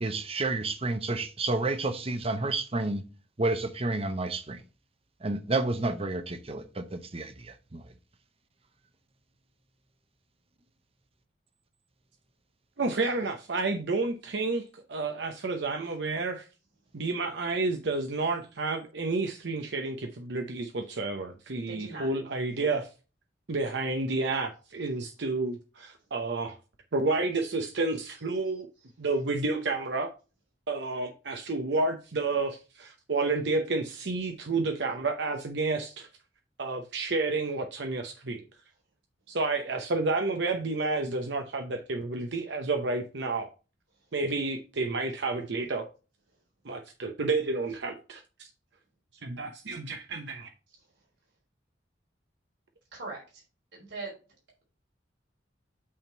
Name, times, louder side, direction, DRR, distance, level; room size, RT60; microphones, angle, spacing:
voice 1, 0.0-3.0 3.4-4.6 5.2-7.8, right 2 dB, 35° right, 0.8 m, -30 dB
voice 2, 12.8-16.5 16.9-22.9 23.5-26.6 26.9-28.7 29.0-30.1 30.7-36.1 36.6-38.4 39.3-43.5 44.1-45.9 46.6-48.5 49.2-50.5, right 3 dB, 65° right, 0.8 m, -30 dB
voice 3, 21.7-22.1 52.9-53.4 53.7-54.1, right 3 dB, 85° right, 3.6 m, -40 dB
8.5 x 3.6 x 4.4 m
head